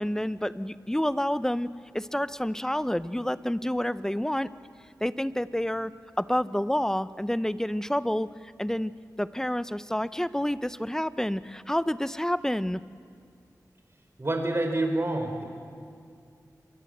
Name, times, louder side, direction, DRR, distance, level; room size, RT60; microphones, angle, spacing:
voice 1, 0.0-4.5 5.0-5.9 6.2-8.3 8.6-8.9 9.2-12.8, equal, 5° left, 15 dB, 0.7 m, -28 dB
voice 2, 14.2-15.4, right 2 dB, 40° right, 4 dB, 4.7 m, -27 dB
27.0 x 22.5 x 8.0 m, 2.2 s
wide cardioid pair, 65°, 7 cm